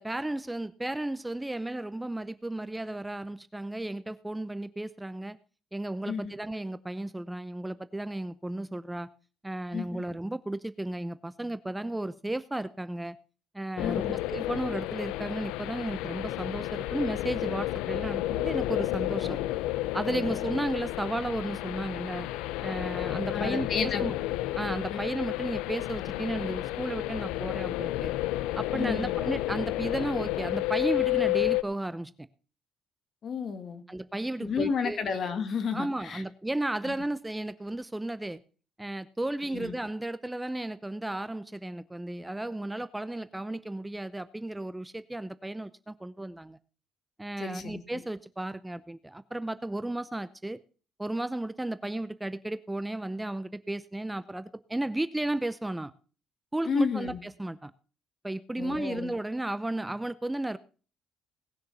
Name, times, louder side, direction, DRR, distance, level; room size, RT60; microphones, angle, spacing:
voice 1, 0.0-5.4 5.7-9.1 9.4-13.2 13.5-19.4 19.9-22.3 22.6-24.2 24.5-28.1 28.5-32.3 33.9-35.0 35.7-38.4 38.8-46.6 47.2-50.6 51.0-55.9 56.5-57.7 58.2-60.6, right 1 dB, 10° right, 0.7 m, -34 dB
voice 2, 9.7-10.0 13.8-14.2 19.2-19.3 20.1-20.2 23.3-24.1 24.9-25.0 28.7-29.1 33.2-33.8 34.4-36.2 39.5-39.7 47.4-47.8 56.7-57.2 58.6-59.1, left 5 dB, 55° left, 2.1 m, -32 dB
sound 1, 13.8-31.6, left 17 dB, 85° left, 0.5 m, -31 dB
18.5 x 6.6 x 5.6 m
supercardioid pair, 70°, 0 cm